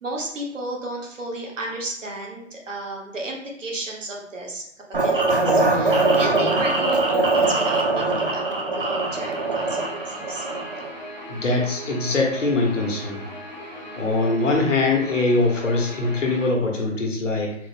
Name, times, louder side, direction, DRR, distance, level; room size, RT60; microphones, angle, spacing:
voice 1, 0.0-10.5 13.8-14.3, right 1 dB, 75° right, -1 dB, 1.1 m, -33 dB
sound 1, 4.9-10.9, right 2 dB, 45° right, 0.4 m, -22 dB
Guitar, 9.1-16.5, equal, 40° left, 0.5 m, -38 dB
voice 2, 11.3-13.2 14.0-17.6, left 3 dB, 70° left, 0 dB, 1.1 m, -22 dB
3.9 x 2.1 x 3.2 m, 0.72 s
hypercardioid pair, 165°, 38 cm